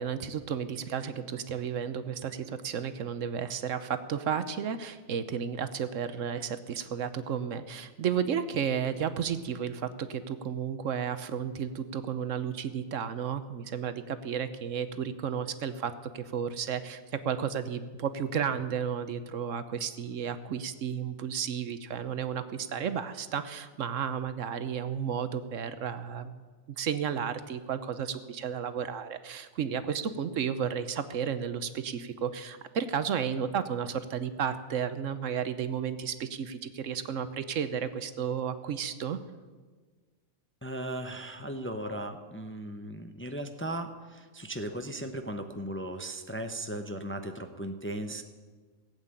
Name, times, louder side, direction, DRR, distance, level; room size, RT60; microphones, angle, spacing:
voice 1, 0.0-26.3 26.8-39.2, right 7 dB, 70° right, 12 dB, 1.1 m, -33 dB
voice 2, 40.6-48.2, right 1 dB, 10° left, 6 dB, 0.7 m, -37 dB
16.5 x 8.2 x 8.8 m, 1.4 s
omnidirectional pair, 1.4 m